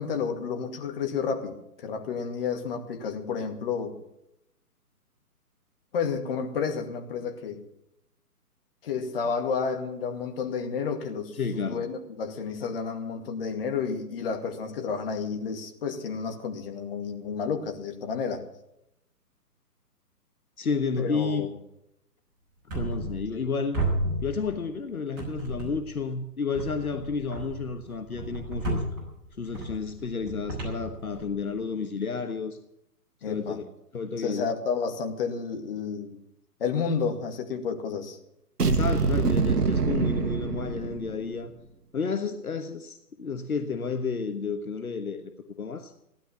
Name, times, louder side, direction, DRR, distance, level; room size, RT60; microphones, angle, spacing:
voice 1, 0.0-4.0 5.9-7.6 8.8-18.4 21.0-21.5 33.2-33.6 34.2-36.2 36.6-38.2, left 6 dB, 35° left, 4 dB, 2.2 m, -31 dB
voice 2, 11.4-11.9 20.6-21.5 22.7-23.8 24.2-28.8 29.4-32.6 33.3-33.6 33.9-34.5 38.6-41.5 41.9-45.2 45.6-45.9, left 5 dB, 65° left, 7 dB, 1.4 m, -31 dB
sound 1, 22.7-23.5 23.7-24.8 25.2-26.0 26.5-31.6, right 1 dB, 20° right, 5.8 m, -33 dB
sound 2, 38.6-41.4, right 5 dB, 75° right, 1.1 m, -25 dB
16.5 x 11.5 x 7.0 m, 0.81 s
figure-of-eight pair, 135°, 47 cm